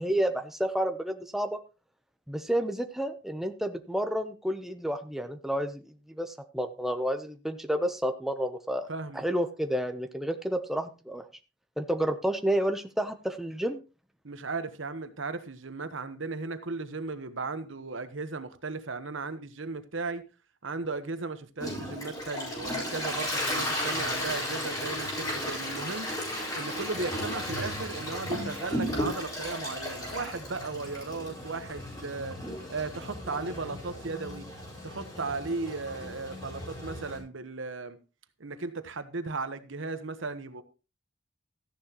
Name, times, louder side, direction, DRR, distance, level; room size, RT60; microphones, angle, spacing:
voice 1, 0.0-1.6 2.3-5.8 6.2-8.9 9.1-11.2 11.8-13.8, equal, ahead, 0.6 m, -30 dB
voice 2, 8.9-9.3 14.2-20.2 20.6-26.1 26.5-32.4 32.7-34.5 34.8-38.0 38.4-40.6, right 3 dB, 75° right, 1.1 m, -36 dB
Toilet flush, 21.6-37.2, left 1 dB, 20° left, 4.4 m, -35 dB
14.0 x 10.5 x 3.0 m
head